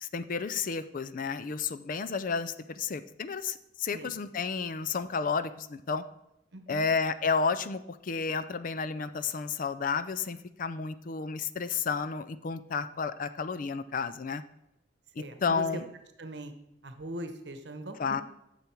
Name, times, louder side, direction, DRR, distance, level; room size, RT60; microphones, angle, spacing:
voice 1, 0.0-6.0 6.7-14.4 15.2-15.9 18.0-18.2, left 5 dB, 50° left, 12 dB, 0.5 m, -31 dB
voice 2, 6.5-6.9 15.2-15.8 16.2-16.5 16.8-18.2, right 1 dB, 65° right, 8 dB, 1.0 m, -41 dB
10.5 x 7.0 x 4.5 m, 0.87 s
head